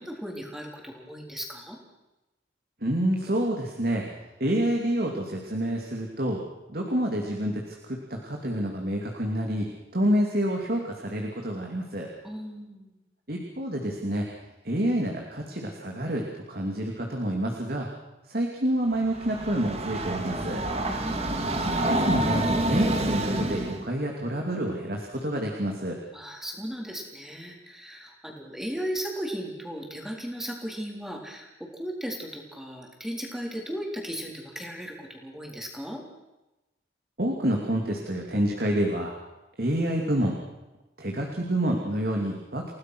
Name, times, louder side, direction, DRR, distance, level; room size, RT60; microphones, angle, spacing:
voice 1, 0.0-1.8 12.2-13.0 20.8-21.6 26.1-36.0, equal, ahead, 0 dB, 4.0 m, -36 dB
voice 2, 2.8-4.0 4.4-6.4 6.7-12.1 13.3-14.3 14.6-17.9 18.2-20.6 21.8-26.0 37.2-39.1 39.6-40.4 41.0-42.7, right 1 dB, 50° right, 0 dB, 2.8 m, -28 dB
Train, 18.9-23.8, right 1 dB, 35° right, 2.4 m, -27 dB
30.0 x 17.5 x 6.3 m, 1.0 s
head